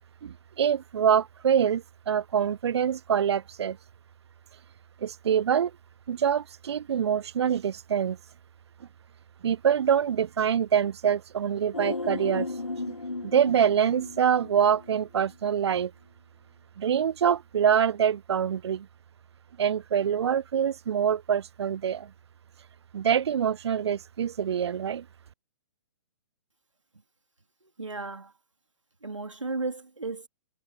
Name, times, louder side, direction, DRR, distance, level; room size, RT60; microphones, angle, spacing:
voice 1, 0.2-3.8 5.0-5.7 6.1-8.2 9.4-12.9 13.2-15.9 16.8-18.9 19.6-22.1 22.9-25.0, right 8 dB, 60° right, 0.5 m, -25 dB
sound 1, 11.7-15.0 15.3-15.4, left 2 dB, 85° left, 7.6 m, -35 dB
voice 2, 27.6-28.3 29.0-30.3, right 3 dB, 85° right, 2.9 m, -34 dB
figure-of-eight pair, 125°, 16 cm